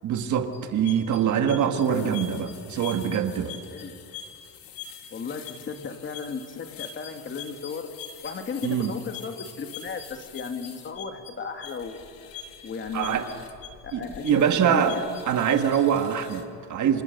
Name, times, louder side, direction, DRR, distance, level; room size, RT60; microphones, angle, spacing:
voice 1, 0.0-3.5 8.6-8.9 12.9-13.3 13.9-14.9 15.3-17.0, right 8 dB, 50° right, 6 dB, 1.9 m, -24 dB
sound 1, 0.5-16.4, left 8 dB, 60° left, 2.4 m, -44 dB
voice 2, 1.9-2.3 3.7-4.0 5.1-7.9 8.2-12.0 12.6-13.2 13.8-15.0, left 5 dB, 30° left, 6 dB, 2.0 m, -35 dB
29.5 x 27.0 x 6.7 m, 2.4 s
cardioid pair, 160°, 38 cm